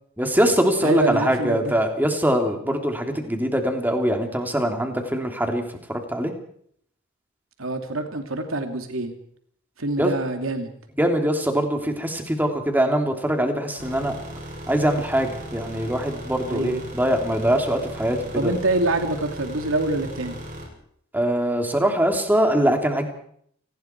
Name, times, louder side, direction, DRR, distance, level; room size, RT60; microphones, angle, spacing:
voice 1, 0.2-5.6 5.9-6.3 10.0-10.1 11.0-14.1 14.7-18.5 21.1-23.1, equal, 10° right, 4 dB, 3.3 m, -22 dB
voice 2, 0.8-1.7 7.6-9.1 9.8-10.7 16.5-16.8 18.3-20.4, right 2 dB, 90° right, 5 dB, 2.7 m, -25 dB
sound 1, 13.8-20.7, equal, 45° right, 7.7 m, -37 dB
28.5 x 19.5 x 4.7 m, 0.65 s
head